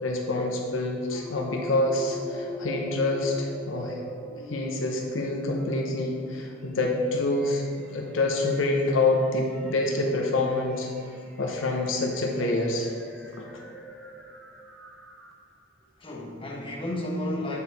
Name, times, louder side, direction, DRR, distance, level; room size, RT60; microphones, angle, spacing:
voice 1, 0.0-4.0 4.5-7.6 7.9-10.9 11.4-12.9 13.4-13.6, left 2 dB, 80° left, 1 dB, 0.8 m, -26 dB
sound 1, 1.1-15.6, left 1 dB, ahead, 0.8 m, -42 dB
voice 2, 16.0-17.6, left 1 dB, 25° left, -3 dB, 1.1 m, -33 dB
8.5 x 4.5 x 4.1 m, 2.1 s
head